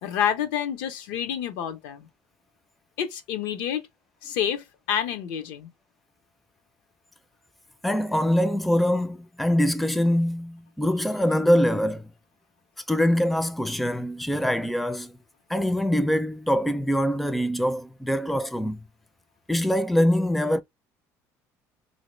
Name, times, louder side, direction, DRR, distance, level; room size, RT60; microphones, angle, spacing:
voice 1, 0.0-2.1 3.0-3.8 4.2-5.7, left 9 dB, 80° left, 0.8 m, -28 dB
voice 2, 7.8-12.0 12.9-15.1 15.5-18.8 19.5-20.6, equal, ahead, 0.4 m, -23 dB
3.0 x 2.8 x 3.1 m
supercardioid pair, 100°, 7 cm